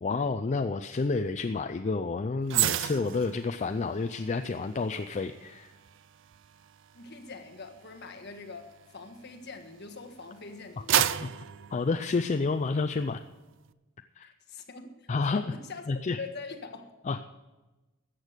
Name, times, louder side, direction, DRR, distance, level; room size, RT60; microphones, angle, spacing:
voice 1, 0.0-5.7 11.0-11.3 11.7-13.2 14.2-14.3 15.1-15.4 15.9-16.2 17.1-17.3, left 4 dB, 35° left, 8 dB, 0.4 m, -30 dB
sound 1, 2.5-9.9 10.4-12.7 13.1-13.3, right 11 dB, 65° right, 0.4 m, -33 dB
voice 2, 6.9-11.0 14.2-16.9, left 4 dB, 55° left, 5 dB, 1.5 m, -44 dB
13.5 x 8.1 x 6.6 m, 1.1 s
head